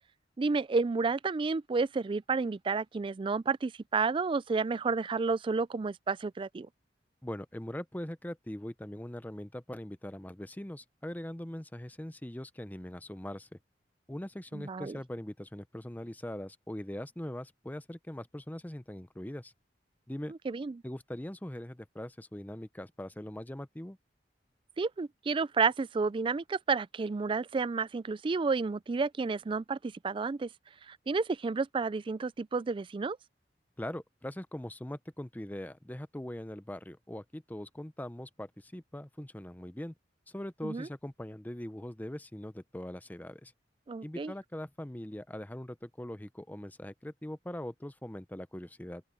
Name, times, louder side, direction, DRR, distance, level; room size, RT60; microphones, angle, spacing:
voice 1, 0.4-6.7 14.5-15.0 20.3-20.8 24.8-30.5 30.9-33.2 40.6-40.9 43.9-44.3, right 4 dB, 30° right, 0.3 m, -31 dB
voice 2, 7.2-13.6 14.1-19.5 20.1-20.3 20.8-24.0 33.8-39.9 40.3-43.5 44.0-49.0, left 1 dB, 10° left, 0.7 m, -41 dB
open air
head